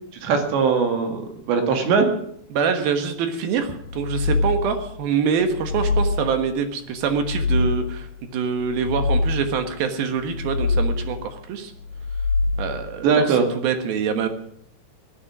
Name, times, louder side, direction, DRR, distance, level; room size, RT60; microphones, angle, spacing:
voice 1, 0.2-2.1 13.0-13.5, right 5 dB, 85° right, 4 dB, 4.4 m, -20 dB
voice 2, 2.5-11.7 12.6-14.3, right 6 dB, 65° right, 7 dB, 2.9 m, -25 dB
sound 1, 3.8-4.9 5.4-6.5 7.0-8.1 8.6-9.7 10.2-11.3 11.8-12.9, left 3 dB, 65° left, 3.3 m, -25 dB
16.5 x 12.0 x 6.1 m, 0.71 s
omnidirectional pair, 4.9 m